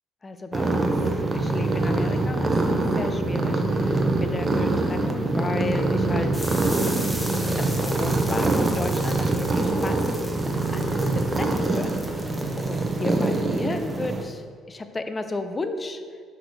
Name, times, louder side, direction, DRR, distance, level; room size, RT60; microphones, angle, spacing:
voice 1, 0.2-0.9 1.3-2.5 3.0-6.4 7.6-10.0 10.3-10.5 10.7-11.1 11.3-11.9 12.2-16.0, left 3 dB, 30° left, 8 dB, 0.6 m, -33 dB
sound 1, 0.5-14.2, right 2 dB, 30° right, 0.9 m, -24 dB
sound 2, 6.3-14.2, equal, 5° left, 1.3 m, -38 dB
5.9 x 5.2 x 4.5 m, 2.1 s
supercardioid pair, 65°, 0 cm